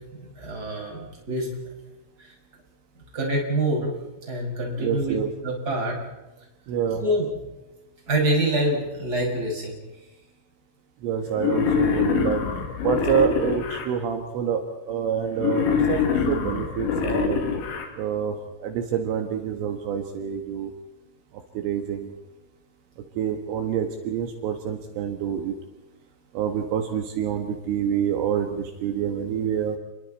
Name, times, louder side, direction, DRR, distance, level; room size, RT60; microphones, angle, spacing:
voice 1, 0.2-1.5 2.2-2.3 3.1-3.9 4.3-5.2 5.4-6.0 7.0-7.3 8.1-9.8, right 1 dB, 20° right, -1 dB, 6.3 m, -25 dB
voice 2, 4.8-5.3 6.7-7.0 11.0-12.4 12.8-17.4 18.0-20.7 21.6-22.1 23.2-25.5 26.3-29.8, right 8 dB, 75° right, 5 dB, 4.0 m, -27 dB
Wild animals, 11.4-13.9 15.4-17.9, left 6 dB, 65° left, 4.8 m, -24 dB
30.0 x 23.0 x 4.3 m, 1.0 s
omnidirectional pair, 6.0 m